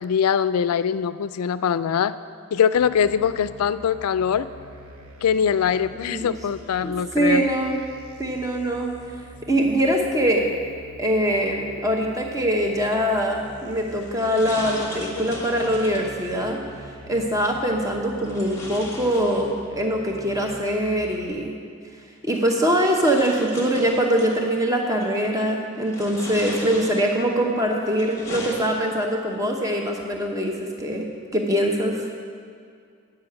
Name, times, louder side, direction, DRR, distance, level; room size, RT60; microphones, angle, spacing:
voice 1, 0.0-2.1 2.5-4.5 5.2-7.5, left 7 dB, 90° left, 15 dB, 0.3 m, -22 dB
sound 1, 2.7-21.3, right 1 dB, 90° right, 1.1 m, -45 dB
voice 2, 6.8-7.8 8.2-8.9 9.5-10.4 11.0-16.6 17.1-21.5 22.2-30.5 30.8-31.1 31.3-32.0, equal, 15° right, 1 dB, 0.8 m, -23 dB
sound 2, 13.6-16.2 18.2-19.8 21.2-21.3 22.3-24.4 25.0-25.4 25.8-27.3 27.8-29.2, left 2 dB, 15° left, 1.2 m, -38 dB
8.9 x 5.7 x 7.8 m, 2.2 s
head